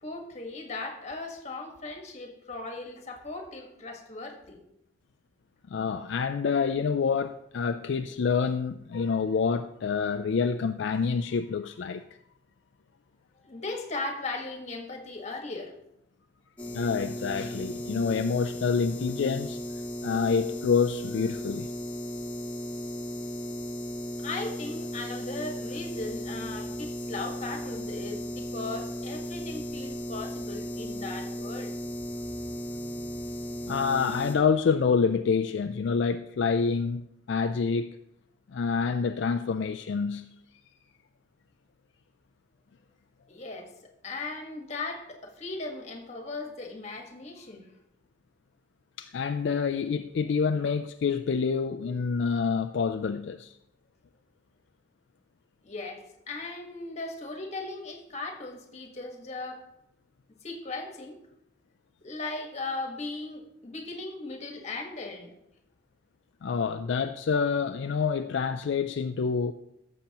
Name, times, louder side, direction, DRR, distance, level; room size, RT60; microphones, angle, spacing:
voice 1, 0.0-4.6 13.4-15.7 24.2-31.7 43.3-43.7 44.0-47.7 55.6-59.6 60.4-61.2 62.0-65.4, left 3 dB, 35° left, 1.5 m, -37 dB
voice 2, 5.7-12.0 16.6-19.6 20.0-21.7 33.7-38.0 38.5-40.3 49.0-53.5 66.4-69.5, left 5 dB, 65° left, 0.4 m, -27 dB
sound 1, 16.6-34.4, equal, 10° left, 1.7 m, -36 dB
17.0 x 7.3 x 2.9 m
head